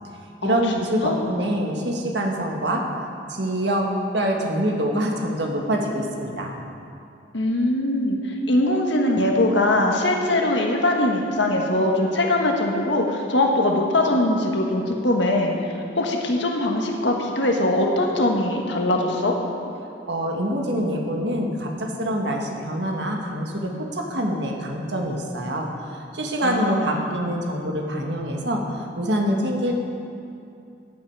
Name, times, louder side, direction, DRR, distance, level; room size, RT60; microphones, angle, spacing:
voice 1, 0.4-2.8 3.3-3.9 4.1-6.5 20.1-25.7 26.1-28.6 28.9-29.7, right 1 dB, 65° right, 1 dB, 1.7 m, -25 dB
voice 2, 7.3-8.2 8.5-19.4 26.4-27.0, left 1 dB, 75° left, 1 dB, 1.5 m, -21 dB
14.5 x 9.5 x 4.8 m, 2.6 s
head